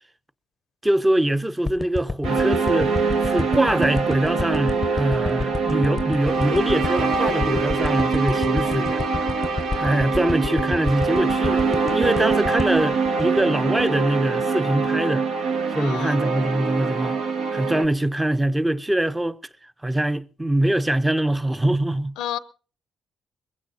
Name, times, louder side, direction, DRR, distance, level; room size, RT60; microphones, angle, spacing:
voice 1, 0.8-2.9 3.2-9.0 9.7-15.3 15.7-17.2 17.5-19.4 19.8-22.2, right 1 dB, 10° right, 0.6 m, -23 dB
sound 1, 1.7-14.0 14.4-14.5, left 3 dB, 25° left, 0.6 m, -30 dB
sound 2, 2.2-17.8, right 4 dB, 85° right, 1.3 m, -24 dB
voice 2, 15.8-16.2 22.2-22.4, left 11 dB, 90° left, 0.6 m, -30 dB
21.0 x 15.5 x 2.7 m
cardioid pair, 70°, 0 cm